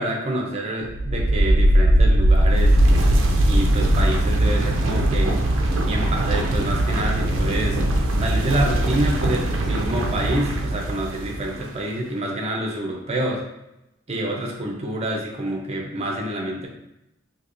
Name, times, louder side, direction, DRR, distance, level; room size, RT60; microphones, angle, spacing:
voice 1, 0.0-2.8 3.5-5.4 5.8-7.8 8.2-13.4 14.1-16.7, right 1 dB, 30° right, 0 dB, 0.7 m, -27 dB
sound 1, 0.9-11.7, right 1 dB, 70° right, 0.5 m, -20 dB
4.5 x 2.9 x 2.6 m, 0.87 s
head